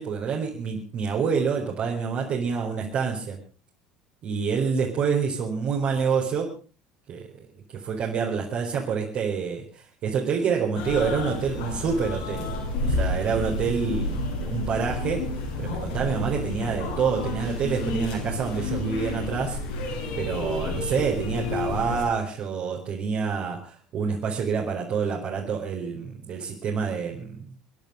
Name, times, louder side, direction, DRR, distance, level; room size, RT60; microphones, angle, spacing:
voice 1, 0.0-3.4 4.2-6.5 7.1-7.5 7.7-12.5 12.8-15.2 15.6-19.6 20.2-27.5, right 6 dB, 50° right, -2 dB, 4.4 m, -27 dB
sound 1, 10.7-22.0, left 2 dB, 75° left, 7.1 m, -30 dB
26.0 x 11.0 x 5.0 m, 0.36 s
hypercardioid pair, 70°, 3 cm